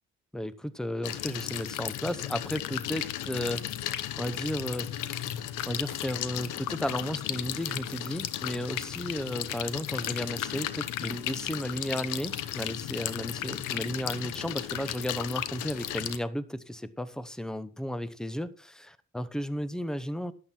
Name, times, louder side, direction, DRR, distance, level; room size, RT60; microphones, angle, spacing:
voice 1, 0.3-5.2 5.7-20.3, equal, ahead, 0.9 m, -34 dB
sound 1, 1.0-16.2, left 12 dB, 90° left, 0.9 m, -35 dB
11.5 x 8.6 x 4.4 m
cardioid pair, 90°, 30 cm